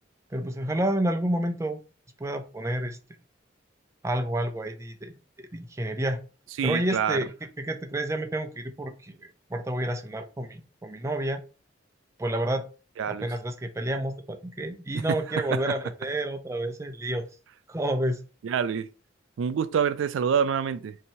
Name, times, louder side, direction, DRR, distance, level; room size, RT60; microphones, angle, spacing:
voice 1, 0.3-1.8 2.2-3.0 4.0-6.2 6.6-7.3 7.6-11.4 12.2-12.6 13.1-17.3 17.7-18.2, right 1 dB, 15° right, 0.4 m, -29 dB
voice 2, 6.6-7.3 13.0-13.3 14.9-15.0 15.5-15.6 18.4-18.9 19.4-21.0, right 7 dB, 90° right, 0.3 m, -26 dB
2.8 x 2.7 x 4.2 m
head